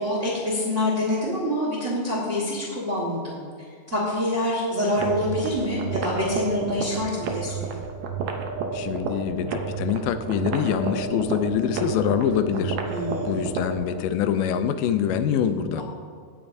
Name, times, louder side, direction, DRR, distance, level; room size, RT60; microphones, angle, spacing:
voice 1, 0.0-3.4 3.9-7.8 12.8-13.5, left 1 dB, 40° right, -4 dB, 1.1 m, -26 dB
sound 1, 4.9-14.0, right 5 dB, 70° right, 1.9 m, -31 dB
voice 2, 8.7-12.8 13.2-15.8, left 8 dB, 85° left, 10 dB, 2.2 m, -25 dB
17.5 x 7.1 x 2.7 m, 2.1 s
omnidirectional pair, 3.8 m